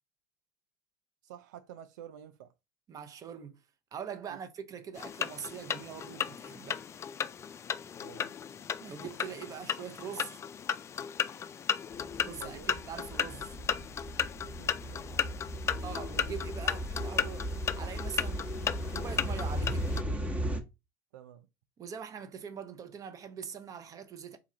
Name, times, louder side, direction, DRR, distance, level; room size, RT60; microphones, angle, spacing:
voice 1, 1.2-2.5 4.3-4.4 8.0-8.3 12.4-12.7 14.4-15.2 15.7-15.9 21.1-21.5, right 10 dB, 85° right, 0.4 m, -50 dB
voice 2, 2.9-3.6 3.9-6.8 8.8-10.4 12.2-13.6 15.8-18.6 18.9-19.9 21.8-24.4, right 7 dB, 35° right, 0.7 m, -43 dB
sound 1, 4.9-20.0, left 8 dB, 30° left, 0.3 m, -35 dB
sound 2, 11.9-20.6, equal, 15° right, 0.9 m, -37 dB
3.7 x 2.4 x 4.3 m
supercardioid pair, 90°, 10 cm